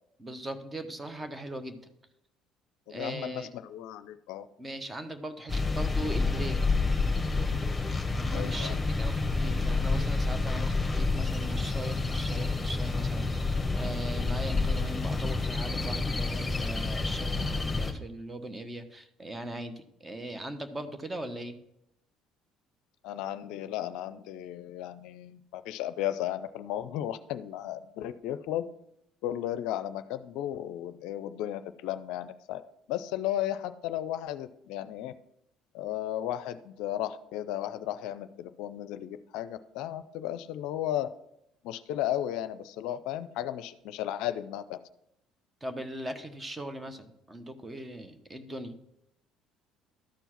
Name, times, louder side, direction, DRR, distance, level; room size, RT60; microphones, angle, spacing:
voice 1, 0.2-1.9 2.9-3.5 4.6-6.8 8.1-21.6 45.6-48.8, right 1 dB, 20° right, 9 dB, 1.2 m, -39 dB
voice 2, 2.9-4.5 8.3-8.8 23.0-28.6 29.2-32.6 32.9-35.1 35.7-41.1 41.6-44.8, left 12 dB, 70° left, 13 dB, 0.4 m, -34 dB
sound 1, 5.5-17.9, left 3 dB, 15° left, 1.6 m, -29 dB
13.0 x 4.5 x 5.8 m, 0.80 s
hypercardioid pair, 65°, 0 cm